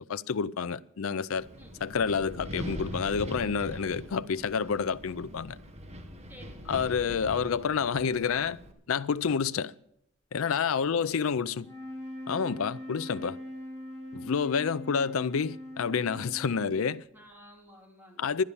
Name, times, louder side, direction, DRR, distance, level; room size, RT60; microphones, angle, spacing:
voice 1, 0.0-1.5 1.8-5.6 6.7-8.6 8.9-9.7 10.3-11.7 12.3-13.4 14.1-17.0 18.2-18.4, left 6 dB, 75° left, 0.5 m, -29 dB
Wind, 1.4-8.7, equal, 30° right, 1.4 m, -42 dB
voice 2, 6.3-6.8 10.8-11.1 17.1-18.3, right 1 dB, 10° right, 3.2 m, -53 dB
sound 1, 11.5-17.0, left 1 dB, 15° left, 4.7 m, -42 dB
11.5 x 11.0 x 7.0 m
head